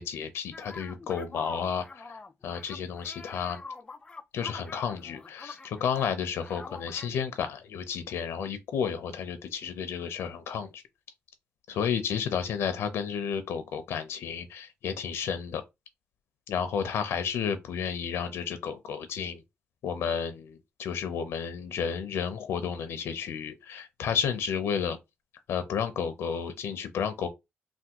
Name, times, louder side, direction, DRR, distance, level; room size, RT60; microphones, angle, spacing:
voice 1, 0.0-2.0 2.4-3.6 4.3-10.8 11.7-15.6 16.5-19.4 19.8-25.0 25.5-27.3, left 7 dB, 80° left, 0.5 m, -32 dB
sound 1, 0.5-6.1 6.4-7.1, left 3 dB, 25° left, 0.3 m, -44 dB
3.4 x 2.2 x 2.8 m
cardioid pair, 100°, 4 cm